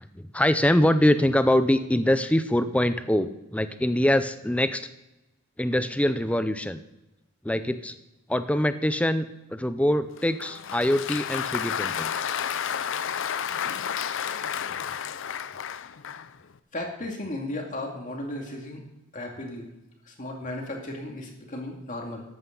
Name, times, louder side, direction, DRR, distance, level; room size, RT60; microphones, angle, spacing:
voice 1, 0.0-4.9 5.6-6.8 7.4-8.0 8.3-12.1, left 1 dB, 5° left, 11 dB, 0.5 m, -24 dB
Applause, 10.2-16.4, left 8 dB, 55° left, 0.5 m, -31 dB
voice 2, 16.7-18.8 19.1-19.7 20.0-22.2, left 1 dB, 35° left, 1 dB, 2.3 m, -35 dB
14.0 x 11.5 x 3.9 m, 0.97 s
head